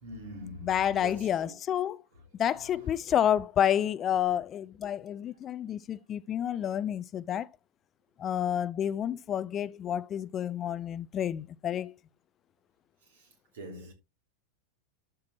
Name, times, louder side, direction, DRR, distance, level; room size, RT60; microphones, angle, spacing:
voice 1, 0.0-1.5 13.1-13.3 13.5-13.9, left 1 dB, 60° right, 3.3 m, -43 dB
voice 2, 0.6-2.0 2.3-7.5 8.2-11.9, left 10 dB, 30° left, 0.4 m, -29 dB
12.0 x 6.0 x 3.1 m
figure-of-eight pair, 90°, 0 cm